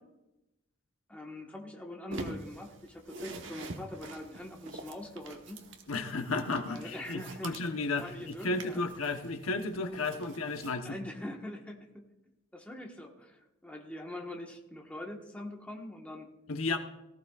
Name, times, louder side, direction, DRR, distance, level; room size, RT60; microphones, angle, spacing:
voice 1, 1.1-5.6 6.6-7.6 8.0-8.9 10.8-12.0 12.5-16.3, left 1 dB, 5° left, 0 dB, 1.3 m, -43 dB
sound 1, 2.1-10.8, right 2 dB, 60° right, 1.2 m, -46 dB
voice 2, 5.9-11.0 16.5-16.8, left 3 dB, 85° left, 6 dB, 1.0 m, -33 dB
18.5 x 14.5 x 2.4 m, 0.95 s
head